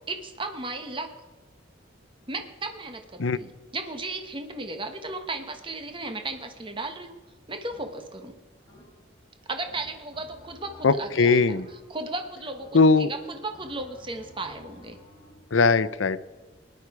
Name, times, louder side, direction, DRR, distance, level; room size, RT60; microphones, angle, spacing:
voice 1, 0.1-1.1 2.3-7.1 7.5-8.4 9.5-11.6 11.9-15.0, right 2 dB, 25° right, 6 dB, 1.1 m, -35 dB
sound 1, 7.7-8.2 8.7-9.2 9.6-12.1 12.5-13.1 13.5-15.4, left 2 dB, 20° left, 4.4 m, -52 dB
voice 2, 10.8-11.7 12.7-13.1 15.5-16.2, left 4 dB, 80° left, 15 dB, 0.6 m, -20 dB
18.5 x 11.0 x 4.8 m, 1.2 s
head